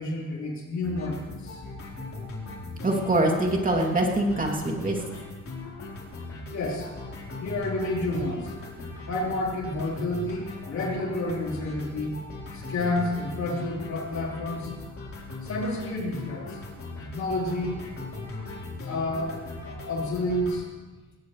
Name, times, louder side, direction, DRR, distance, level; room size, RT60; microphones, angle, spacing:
voice 1, 0.0-1.6 6.5-6.9 7.4-8.5 9.0-12.1 12.5-14.7 15.4-16.6 17.0-17.9 18.9-20.7, left 2 dB, 65° left, -3 dB, 4.2 m, -30 dB
sound 1, 0.8-20.6, left 3 dB, 45° left, 4.2 m, -39 dB
voice 2, 2.8-5.0, right 1 dB, 25° right, 0 dB, 2.9 m, -24 dB
20.0 x 17.0 x 3.3 m, 1.2 s
cardioid pair, 90°, 30 cm